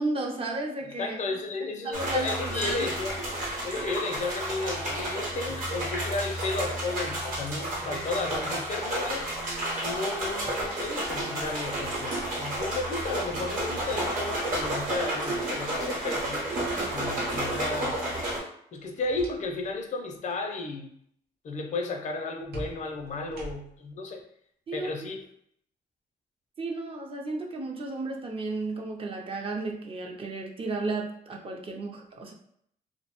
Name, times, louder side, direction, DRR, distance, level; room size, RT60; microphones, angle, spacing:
voice 1, 0.0-1.2 1.6-2.9 24.7-24.9 26.6-32.3, right 2 dB, 35° right, 1 dB, 0.4 m, -33 dB
voice 2, 1.0-3.1 3.6-9.4 9.8-16.5 16.9-18.0 18.7-20.9 21.4-24.2 24.7-25.2, left 3 dB, 50° left, 3 dB, 0.4 m, -33 dB
sound 1, 1.9-18.4, right 1 dB, 60° right, 0.9 m, -31 dB
sound 2, 18.8-19.8 20.1-20.4 22.5-23.9, right 2 dB, 90° right, 0.7 m, -43 dB
2.6 x 2.1 x 2.8 m, 0.68 s
cardioid pair, 130°, 16 cm